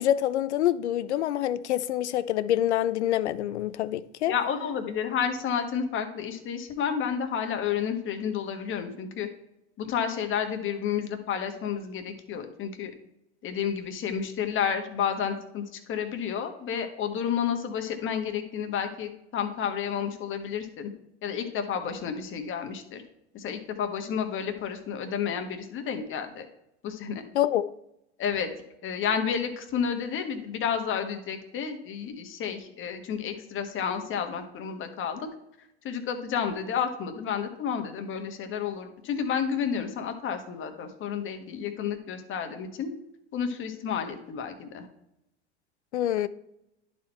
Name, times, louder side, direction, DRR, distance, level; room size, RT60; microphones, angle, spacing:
voice 1, 0.0-4.3 27.3-27.7 45.9-46.3, left 12 dB, 85° left, 0.5 m, -26 dB
voice 2, 4.3-9.3 9.8-12.9 13.4-20.9 21.2-23.0 23.3-26.5 26.8-27.2 28.2-28.5 28.8-35.3 35.8-42.9 43.3-44.9, left 7 dB, 35° left, 1.3 m, -31 dB
11.0 x 4.5 x 4.3 m
hypercardioid pair, 100°, 33 cm